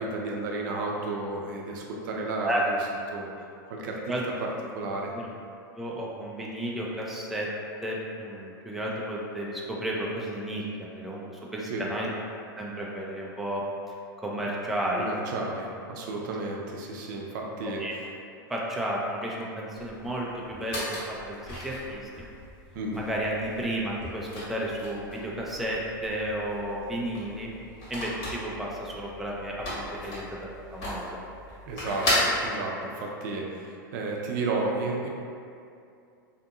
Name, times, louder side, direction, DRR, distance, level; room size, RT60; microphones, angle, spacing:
voice 1, 0.0-2.8 3.1-3.3 3.7-4.0 4.4-5.1 11.7-11.9 15.0-18.1 22.7-23.0 31.7-35.1, right 2 dB, 60° right, -1 dB, 0.5 m, -32 dB
voice 2, 5.7-7.5 7.8-12.1 12.6-13.6 14.2-15.1 17.8-17.9 18.5-22.0 23.0-27.5 27.9-30.3 30.7-31.2, right 1 dB, ahead, -4 dB, 0.3 m, -32 dB
sound 1, 19.8-32.5, left 1 dB, 45° left, 1.2 m, -35 dB
2.7 x 2.6 x 2.4 m, 2.5 s
hypercardioid pair, 100°, 11 cm